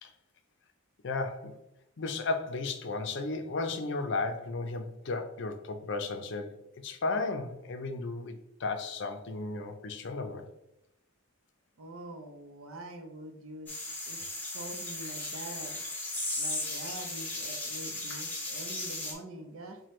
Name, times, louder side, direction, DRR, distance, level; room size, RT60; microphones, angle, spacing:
voice 1, 1.0-1.5 2.0-10.5, left 3 dB, 55° left, 6 dB, 0.5 m, -34 dB
voice 2, 11.8-13.8 14.1-15.8 16.4-19.8, right 1 dB, 80° right, 5 dB, 0.6 m, -45 dB
sound 1, 13.7-19.1, left 2 dB, 10° left, 0.8 m, -36 dB
5.8 x 2.2 x 3.1 m, 0.83 s
head